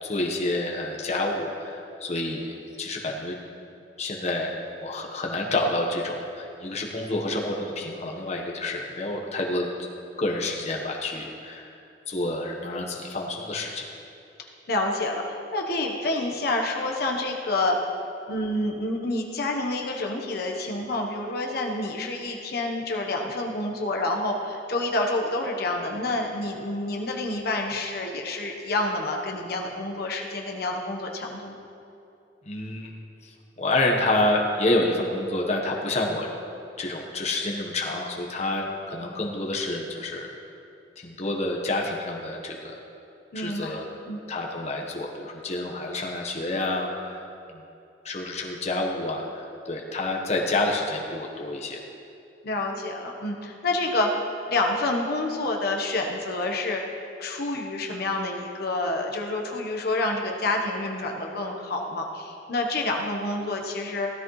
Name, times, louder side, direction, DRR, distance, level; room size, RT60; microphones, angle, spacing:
voice 1, 0.0-3.4 4.0-4.5 4.8-9.7 10.2-11.7 12.1-13.8 32.5-32.9 33.2-33.3 33.6-36.3 36.8-40.3 41.0-42.7 43.3-43.8 44.3-47.6 48.0-51.8, left 2 dB, 40° left, 0 dB, 1.2 m, -28 dB
voice 2, 14.7-17.9 18.3-31.5 43.3-43.8 44.1-44.2 52.4-54.1 54.5-56.8 57.2-64.1, left 2 dB, 60° left, 1 dB, 1.1 m, -28 dB
16.0 x 13.0 x 3.2 m, 2.7 s
head